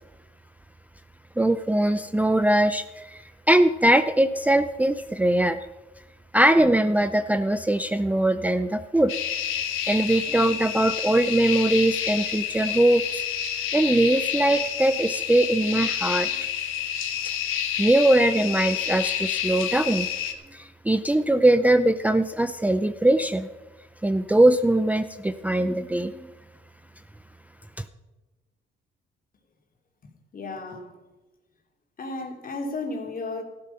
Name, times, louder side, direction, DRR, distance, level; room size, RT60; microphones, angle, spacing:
voice 1, 1.4-5.6 6.3-9.2 9.9-13.2 13.7-16.3 17.8-20.1 20.5-23.5 24.0-26.2, right 1 dB, 5° right, 10 dB, 0.5 m, -21 dB
sound 1, 9.1-20.3, left 9 dB, 85° left, 1.4 m, -29 dB
voice 2, 30.0-31.0 32.0-33.4, left 3 dB, 45° left, 3 dB, 3.0 m, -34 dB
14.0 x 11.5 x 5.7 m, 1.1 s
cardioid pair, 90°, 20 cm